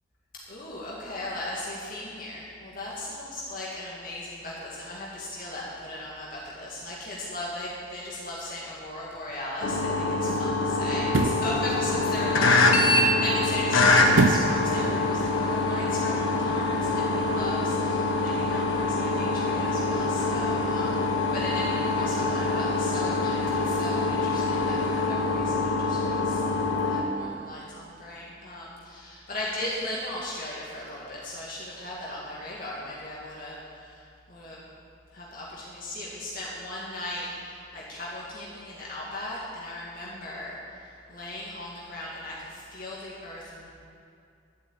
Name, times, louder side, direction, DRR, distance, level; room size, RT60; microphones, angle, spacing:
voice 1, 0.5-21.0 21.3-26.4 26.8-34.6 35.1-43.7, left 1 dB, 45° left, -6 dB, 2.1 m, -37 dB
sound 1, 9.1-9.3 11.0-11.5 14.1-14.6 15.0-15.1, right 3 dB, 85° right, 0.7 m, -23 dB
sound 2, 9.6-27.0, left 2 dB, 90° left, 1.3 m, -25 dB
12.0 x 8.5 x 8.5 m, 2.4 s
head